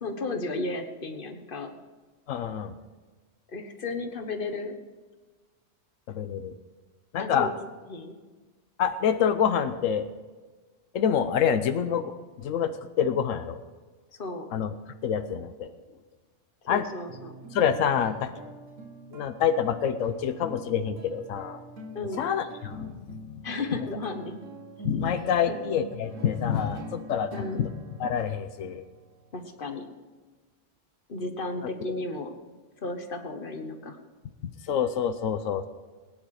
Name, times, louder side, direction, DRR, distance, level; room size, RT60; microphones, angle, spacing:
voice 1, 0.0-1.7 3.5-4.7 7.2-7.5 7.9-8.2 14.2-14.5 16.7-17.3 21.9-22.2 23.4-24.4 25.5-25.7 27.3-27.7 29.3-29.9 31.1-32.3 32.8-34.0, left 3 dB, 45° left, 6 dB, 1.5 m, -34 dB
voice 2, 2.3-2.7 6.1-6.5 7.1-7.5 8.8-10.1 10.9-12.1 12.4-13.6 14.5-14.7 15.0-15.7 16.7-16.8 17.5-18.4 19.1-21.6 22.2-23.2 24.8-27.7 28.0-28.8 34.7-35.7, left 8 dB, 90° left, 10 dB, 1.1 m, -27 dB
sound 1, 17.1-29.8, right 1 dB, 85° right, 1.6 m, -45 dB
18.5 x 9.7 x 4.9 m, 1.3 s
omnidirectional pair, 1.3 m